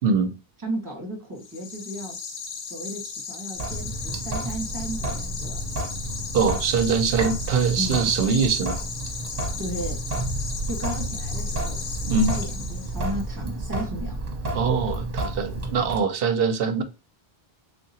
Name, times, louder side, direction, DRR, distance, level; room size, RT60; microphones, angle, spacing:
voice 1, 0.0-0.3 6.3-8.8 12.0-12.3 14.5-16.8, right 5 dB, 70° right, 0.7 m, -23 dB
voice 2, 0.6-2.2 2.6-5.6 7.8-8.1 9.6-10.1 10.7-14.2, right 1 dB, 20° right, 1.2 m, -34 dB
sound 1, 1.4-13.2, left 5 dB, 85° left, 1.1 m, -36 dB
Sink (filling or washing) / Drip, 3.6-16.0, right 1 dB, 40° right, 0.9 m, -31 dB
3.7 x 2.7 x 2.7 m
omnidirectional pair, 1.0 m